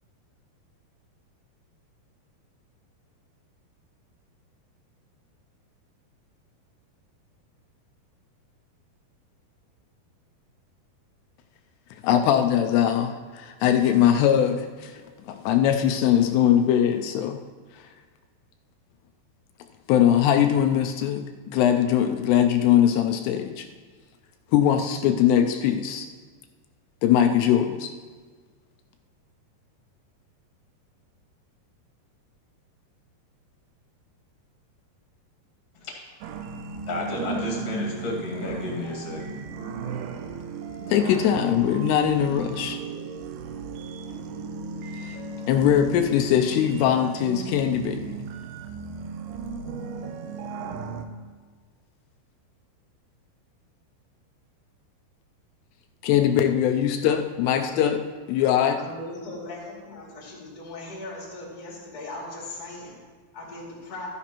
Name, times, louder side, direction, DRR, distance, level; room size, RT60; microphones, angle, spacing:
voice 1, 12.0-15.0 15.3-17.4 19.9-23.7 24.5-26.1 27.0-27.9 40.9-42.8 44.9-45.2 45.5-48.3 56.0-58.0 58.3-58.8, left 10 dB, 85° left, 5 dB, 2.6 m, -21 dB
sound 1, 36.2-51.0, right 5 dB, 80° right, 2.5 m, -35 dB
voice 2, 36.9-39.5, left 3 dB, 45° left, -2 dB, 2.6 m, -32 dB
voice 3, 57.5-57.9 58.8-63.0 63.3-64.1, left 2 dB, 30° left, -4 dB, 2.3 m, -38 dB
13.0 x 10.0 x 3.0 m, 1.5 s
omnidirectional pair, 4.8 m